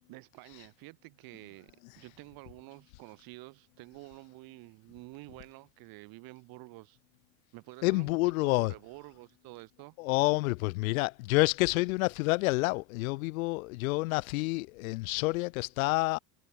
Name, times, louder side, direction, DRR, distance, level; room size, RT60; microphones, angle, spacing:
voice 1, 0.1-7.0 7.5-10.0, right 22 dB, 60° right, 5.2 m, -50 dB
voice 2, 7.8-8.7 10.0-16.2, left 23 dB, 80° left, 0.7 m, -28 dB
supercardioid pair, 115°, 41 cm